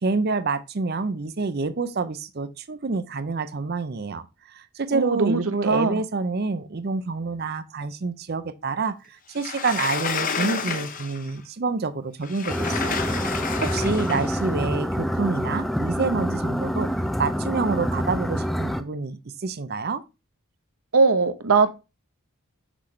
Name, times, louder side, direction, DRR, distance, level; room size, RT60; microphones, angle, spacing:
voice 1, 0.0-13.0 13.3-16.9 17.2-20.0, right 4 dB, 45° right, 0.6 m, -28 dB
voice 2, 4.9-5.4 5.6-6.0 20.9-21.7, right 4 dB, 80° right, 0.9 m, -20 dB
Sliding door, 9.4-11.3 12.2-14.4, left 5 dB, 40° left, 0.7 m, -30 dB
sound 1, 12.5-18.8, equal, ahead, 0.4 m, -26 dB
6.1 x 6.0 x 3.1 m
head